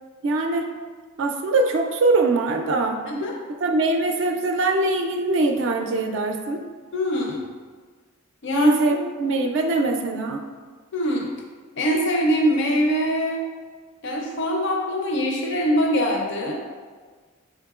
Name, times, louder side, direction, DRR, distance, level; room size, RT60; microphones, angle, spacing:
voice 1, 0.2-0.7 1.2-3.0 3.6-6.6 8.5-10.5, right 2 dB, 60° right, 4 dB, 0.3 m, -22 dB
voice 2, 6.9-7.4 8.4-9.0 10.9-11.3 11.8-13.4 14.0-16.6, equal, 55° left, 0 dB, 0.5 m, -23 dB
5.6 x 3.5 x 2.3 m, 1.5 s
head